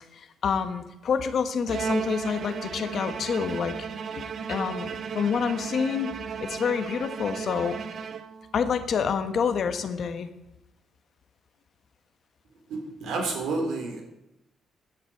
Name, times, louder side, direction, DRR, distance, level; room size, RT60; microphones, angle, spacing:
voice 1, 0.1-3.8 4.1-6.1 6.4-7.8 8.5-10.3, left 6 dB, 45° left, 9 dB, 1.1 m, -28 dB
Bowed string instrument, 1.7-8.6, right 6 dB, 45° right, 0.8 m, -34 dB
voice 2, 13.0-14.0, right 3 dB, 75° right, 2 dB, 3.9 m, -29 dB
16.0 x 10.5 x 4.6 m, 0.89 s
cardioid pair, 180°, 0 cm